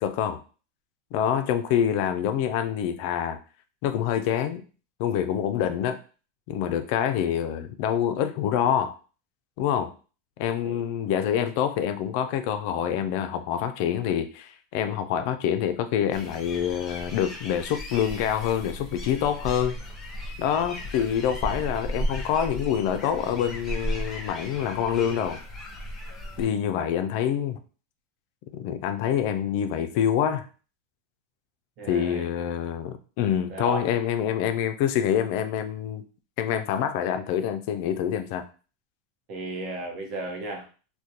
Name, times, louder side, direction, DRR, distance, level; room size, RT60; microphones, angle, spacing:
voice 1, 0.0-0.4 1.1-3.4 3.8-4.6 5.0-6.0 6.5-9.0 9.6-9.9 10.4-19.7 20.4-25.4 26.4-27.6 28.5-30.5 31.9-36.0 36.4-38.4, left 9 dB, 60° left, 9 dB, 0.3 m, -26 dB
sound 1, 16.1-26.5, equal, 20° left, 0.7 m, -35 dB
voice 2, 31.8-32.3 33.5-34.0 39.3-40.7, right 3 dB, 45° right, 1 dB, 0.8 m, -34 dB
2.4 x 2.1 x 2.7 m, 0.36 s
supercardioid pair, 125°, 0 cm